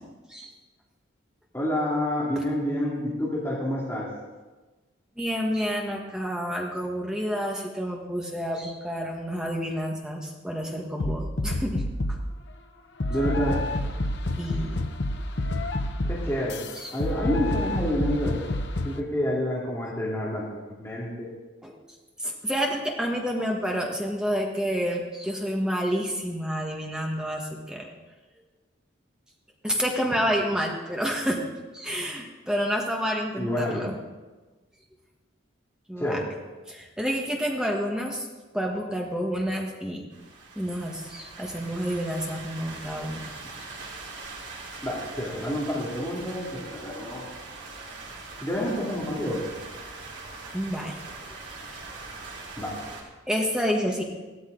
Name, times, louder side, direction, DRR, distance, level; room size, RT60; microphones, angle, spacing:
voice 1, 1.5-4.1 13.1-13.6 16.1-16.6 16.9-18.4 18.8-21.3 33.4-34.0 36.0-36.3 44.8-47.3 48.4-49.4 52.6-52.7, left 1 dB, 15° left, -7 dB, 2.4 m, -28 dB
voice 2, 5.2-11.8 12.1-12.2 14.4-14.8 16.8-16.9 21.6-21.8 22.2-27.9 29.6-31.4 31.7-33.9 35.9-36.2 36.7-38.3 38.5-40.0 40.5-43.2 50.5-51.0 53.3-54.0, equal, 5° right, -1 dB, 1.4 m, -29 dB
sound 1, 11.0-12.3 13.0-19.0, left 1 dB, 60° left, 0.8 m, -28 dB
sound 2, 40.1-53.0, right 3 dB, 65° right, 4.1 m, -42 dB
15.5 x 13.0 x 3.9 m, 1.2 s
head